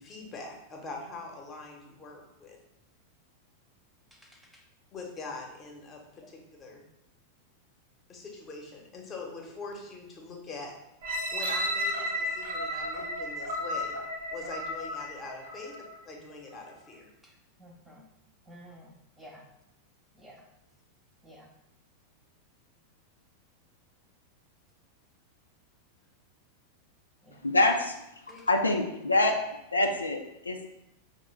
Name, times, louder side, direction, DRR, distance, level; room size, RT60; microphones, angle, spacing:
voice 1, 0.0-2.6 4.9-6.8 8.1-10.7 11.3-14.0 14.3-15.7 16.1-17.1 28.3-28.5, left 3 dB, 25° left, 0 dB, 0.9 m, -43 dB
voice 2, 4.1-4.6 6.2-6.3 15.6-15.8 17.2-18.1 18.5-19.4 20.1-20.5 21.2-21.5 27.2-27.5 28.3-28.5, equal, 5° right, 0 dB, 0.6 m, -53 dB
sound 1, 11.0-16.0 16.5-16.6, equal, 60° right, 1.0 m, -33 dB
voice 3, 27.4-27.9 28.5-29.4 29.7-30.7, left 2 dB, 80° left, 3 dB, 0.3 m, -25 dB
5.1 x 2.2 x 3.2 m, 0.86 s
figure-of-eight pair, 90°, 0 cm